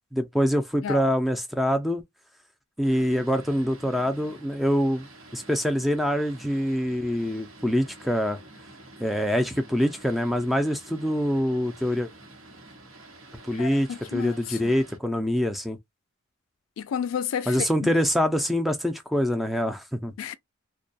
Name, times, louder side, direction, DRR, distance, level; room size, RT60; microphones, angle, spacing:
voice 1, 0.1-2.0 2.8-5.1 5.3-8.4 9.0-12.1 13.5-15.8 17.5-20.1, equal, ahead, 0.4 m, -25 dB
Boat Water vehicle, 2.8-15.0, right 2 dB, 85° right, 1.0 m, -48 dB
voice 2, 13.5-14.7 16.8-17.9 20.2-20.3, left 8 dB, 80° left, 0.3 m, -32 dB
2.2 x 2.2 x 2.5 m
head